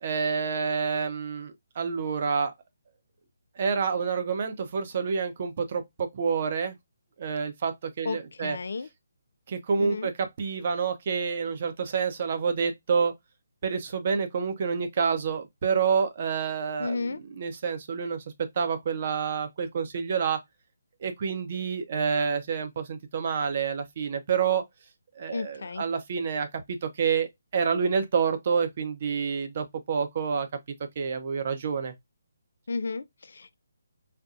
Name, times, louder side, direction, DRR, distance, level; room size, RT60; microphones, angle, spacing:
voice 1, 0.0-2.5 3.6-6.8 7.2-8.6 9.5-10.1 10.4-13.1 13.6-17.1 17.4-18.2 18.6-20.4 21.0-24.6 25.2-30.5 31.0-31.9, right 6 dB, 45° right, 0.8 m, -28 dB
voice 2, 8.0-8.9 9.8-10.1 16.8-17.2 25.3-25.8 32.7-33.5, left 4 dB, 65° left, 0.4 m, -33 dB
4.2 x 2.2 x 2.5 m
figure-of-eight pair, 150°, 0 cm